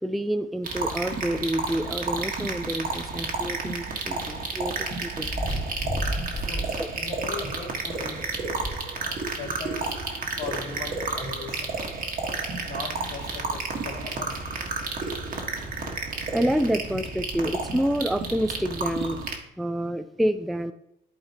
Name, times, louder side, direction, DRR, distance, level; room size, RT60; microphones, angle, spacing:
voice 1, 0.0-5.3 6.8-6.9 16.3-19.2 19.6-20.7, equal, ahead, 9 dB, 0.4 m, -28 dB
sound 1, 0.6-19.4, right 3 dB, 45° right, 1.4 m, -31 dB
sound 2, 5.2-6.9 7.3-7.4 7.8-7.9 8.3-9.4 10.4-10.5 12.0-12.1 12.6-12.7 13.4-13.7 15.0-15.1 15.3-15.4 17.1-17.4 18.1-18.2, right 1 dB, 30° left, 2.9 m, -32 dB
voice 2, 6.3-8.2 8.9-9.9 10.4-11.8 12.6-14.4, left 4 dB, 65° left, -7 dB, 2.2 m, -39 dB
11.5 x 4.0 x 2.8 m, 0.78 s
cardioid pair, 90°, 20 cm